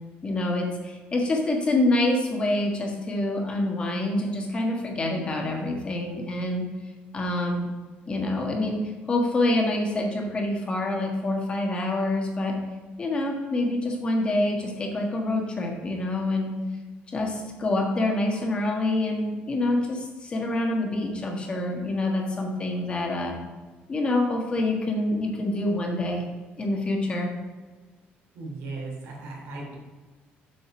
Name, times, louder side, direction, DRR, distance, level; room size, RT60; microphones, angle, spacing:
voice 1, 0.2-6.7 7.1-7.7 8.1-12.6 13.0-16.6 17.1-23.4 23.9-26.2 26.6-27.3, left 2 dB, 25° left, 1 dB, 1.5 m, -26 dB
voice 2, 28.3-29.8, right 3 dB, 80° right, -1 dB, 3.0 m, -37 dB
7.6 x 5.2 x 6.1 m, 1.3 s
cardioid pair, 150°, 4 cm